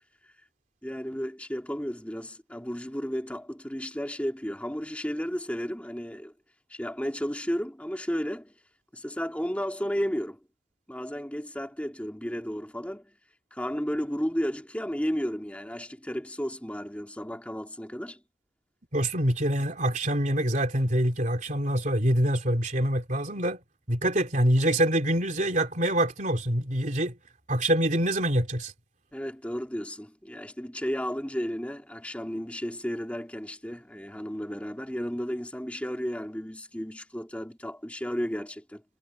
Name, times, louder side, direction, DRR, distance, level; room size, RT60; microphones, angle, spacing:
voice 1, 0.8-6.3 6.7-8.5 8.9-10.4 10.9-13.1 13.5-18.2 29.1-38.8, equal, 5° left, 2.5 m, -33 dB
voice 2, 18.9-23.6 23.9-27.1 27.5-28.7, right 1 dB, 40° right, 3.3 m, -25 dB
head